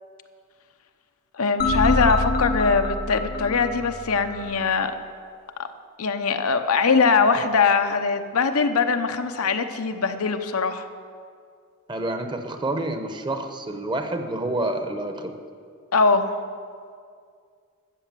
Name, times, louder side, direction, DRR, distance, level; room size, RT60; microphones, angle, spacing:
voice 1, 1.4-4.9 6.0-10.8 15.9-16.3, left 4 dB, 85° left, 7 dB, 0.8 m, -22 dB
sound 1, 1.6-4.7, left 2 dB, 40° left, 0.8 m, -26 dB
voice 2, 11.9-15.3, right 2 dB, 20° right, 7 dB, 0.9 m, -28 dB
13.0 x 7.8 x 7.5 m, 2.2 s
head